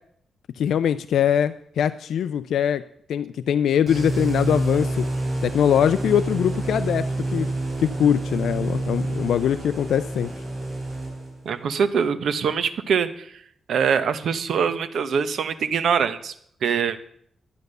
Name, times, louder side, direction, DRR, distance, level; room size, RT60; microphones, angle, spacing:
voice 1, 0.6-2.8 3.1-5.0 5.4-7.5 7.8-10.3, left 9 dB, 90° left, 12 dB, 0.4 m, -22 dB
sound 1, 3.9-11.5, right 2 dB, 25° right, 4.2 m, -28 dB
voice 2, 11.4-13.3 13.7-16.3 16.6-17.0, right 6 dB, 70° right, 11 dB, 1.0 m, -23 dB
13.0 x 9.3 x 6.7 m, 0.66 s
wide cardioid pair, 165°, 0 cm